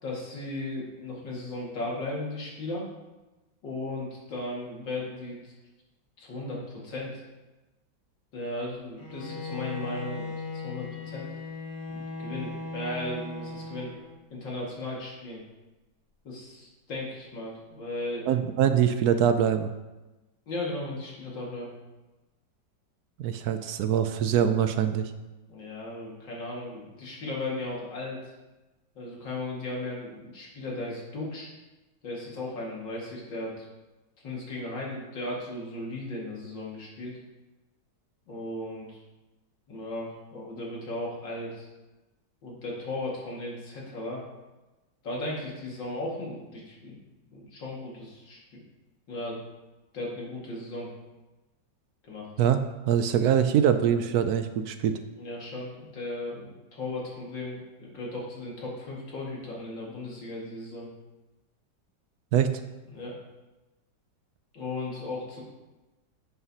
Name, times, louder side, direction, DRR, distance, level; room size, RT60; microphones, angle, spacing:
voice 1, 0.0-2.9 3.6-5.4 6.2-7.2 8.3-11.3 11.9-13.9 14.3-15.4 16.2-18.2 20.5-21.7 25.5-28.3 29.0-31.5 32.0-33.7 34.2-37.2 38.3-39.0 39.7-41.7 42.4-44.2 45.0-47.0 47.3-48.6 49.1-49.4 49.9-50.9 52.0-52.3 55.2-60.9 62.9-63.2 64.5-65.4, left 2 dB, 85° left, -4 dB, 2.7 m, -36 dB
Bowed string instrument, 9.0-14.3, left 3 dB, 20° left, 1.4 m, -38 dB
voice 2, 18.3-19.7 23.2-25.1 52.4-52.6 52.9-55.0 62.3-62.5, right 9 dB, 70° right, 9 dB, 0.9 m, -23 dB
11.0 x 7.8 x 2.8 m, 1.1 s
omnidirectional pair, 2.0 m